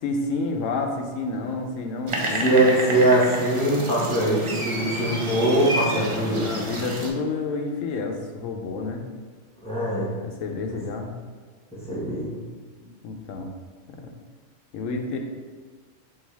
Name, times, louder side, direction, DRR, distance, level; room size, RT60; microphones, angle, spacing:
voice 1, 0.0-2.7 6.0-9.0 10.2-11.1 13.0-13.5 13.9-14.1 14.7-15.2, left 3 dB, 85° left, 3 dB, 1.0 m, -29 dB
sound 1, 2.1-7.1, right 1 dB, 50° right, 0.3 m, -29 dB
voice 2, 2.4-6.4 9.6-10.1 11.9-12.3, right 1 dB, 5° left, -9 dB, 1.3 m, -22 dB
5.5 x 2.8 x 3.3 m, 1.5 s
omnidirectional pair, 1.3 m